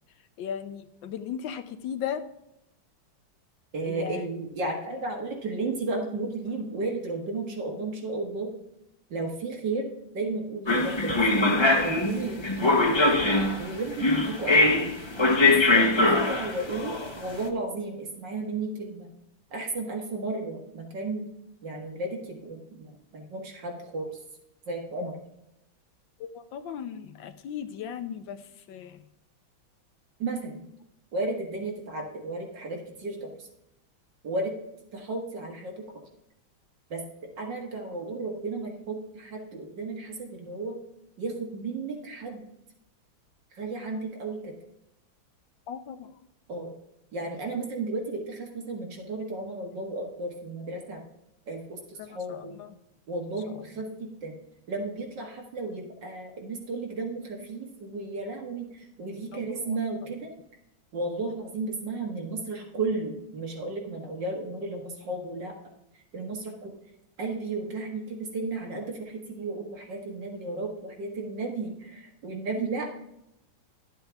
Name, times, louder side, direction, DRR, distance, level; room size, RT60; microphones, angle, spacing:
voice 1, 0.4-2.2 3.9-4.3 26.2-28.4 28.7-29.0 45.7-46.2 52.0-52.7 53.5-53.6 59.3-59.8, left 8 dB, 75° left, 10 dB, 1.4 m, -37 dB
voice 2, 3.7-8.5 9.1-9.9 10.1-12.9 13.6-14.9 15.4-19.1 19.5-21.3 21.6-24.1 24.7-25.2 30.2-30.6 31.1-33.5 34.2-34.5 34.9-35.8 36.9-37.0 37.4-40.8 41.2-42.4 43.5-44.5 46.5-46.7 47.1-51.0 51.5-52.5 53.1-54.4 54.7-60.3 60.9-65.6 66.1-66.7 67.2-72.9, right 3 dB, 65° right, 1 dB, 2.3 m, -34 dB
sound 1, 10.7-17.4, left 2 dB, 45° left, 0.3 m, -22 dB
12.0 x 7.8 x 3.5 m, 0.84 s
omnidirectional pair, 2.1 m